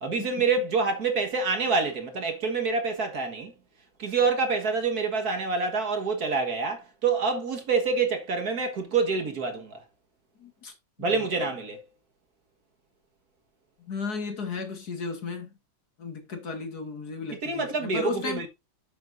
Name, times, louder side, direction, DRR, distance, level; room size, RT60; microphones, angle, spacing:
voice 1, 0.0-3.5 4.0-9.8 11.0-11.8 17.4-18.5, right 4 dB, 55° right, 2.0 m, -27 dB
voice 2, 10.4-10.7 11.0-11.3 13.8-15.5 16.0-18.5, left 4 dB, 55° left, 2.6 m, -35 dB
11.5 x 7.4 x 2.6 m
omnidirectional pair, 2.1 m